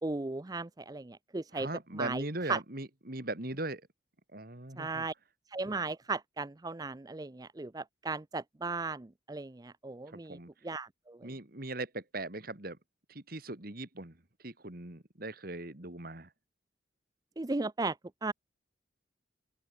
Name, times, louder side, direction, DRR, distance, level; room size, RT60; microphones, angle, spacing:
voice 1, 0.0-1.7 2.0-2.6 4.8-5.1 5.5-10.4 10.6-11.3 17.4-18.0 18.2-18.3, right 3 dB, 20° right, 0.5 m, -36 dB
voice 2, 1.5-3.8 4.3-5.1 10.1-10.5 11.2-12.8 13.1-14.2 14.4-16.3, right 2 dB, 50° right, 2.6 m, -39 dB
open air
head